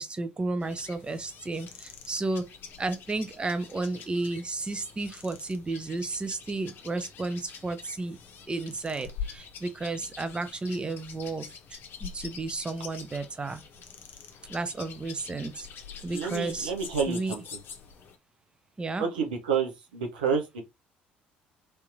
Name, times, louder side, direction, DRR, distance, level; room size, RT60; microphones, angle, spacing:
voice 1, 0.0-2.4 2.8-8.2 8.5-11.5 12.0-13.6 14.5-15.7 16.0-16.7 17.1-17.4 18.8-19.1, right 3 dB, 20° right, 0.6 m, -32 dB
sound 1, 0.6-18.2, left 7 dB, 50° left, 0.7 m, -45 dB
voice 2, 16.1-17.4 19.0-20.6, right 6 dB, 80° right, 0.8 m, -29 dB
3.5 x 2.8 x 2.5 m
hypercardioid pair, 55°, 5 cm